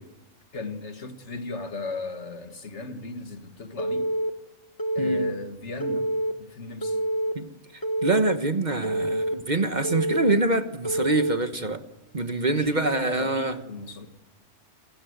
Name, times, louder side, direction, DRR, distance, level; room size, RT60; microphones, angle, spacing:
voice 1, 0.5-4.1 5.0-6.1 6.4-7.0 12.5-14.1, left 2 dB, 65° left, 2.1 m, -37 dB
Telephone, 3.8-4.3 4.8-5.3 5.8-6.3 6.8-7.3 7.8-8.3 8.8-9.3 9.8-10.3 10.8-11.4, right 1 dB, 15° left, 1.7 m, -26 dB
voice 2, 8.0-11.8 12.1-13.6, right 2 dB, 40° right, 1.3 m, -25 dB
29.0 x 17.0 x 8.1 m
omnidirectional pair, 1.3 m